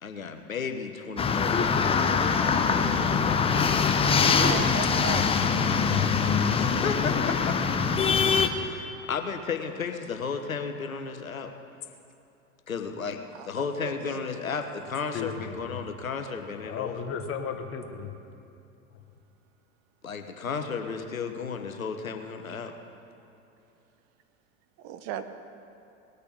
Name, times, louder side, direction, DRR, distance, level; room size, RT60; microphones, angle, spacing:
voice 1, 0.0-2.6 6.4-7.6 8.2-11.5 12.7-13.2 13.4-17.1 20.0-22.7, left 5 dB, 85° left, 6 dB, 1.1 m, -34 dB
sound 1, 1.2-8.5, left 5 dB, 15° left, 0.7 m, -23 dB
voice 2, 4.3-5.3 13.3-14.2 24.8-25.2, right 9 dB, 40° right, 10 dB, 0.9 m, -37 dB
voice 3, 15.1-15.8 16.6-18.1 18.9-19.0, left 6 dB, 35° left, 5 dB, 1.4 m, -35 dB
19.0 x 6.7 x 6.8 m, 2.8 s
figure-of-eight pair, 85°, 40 cm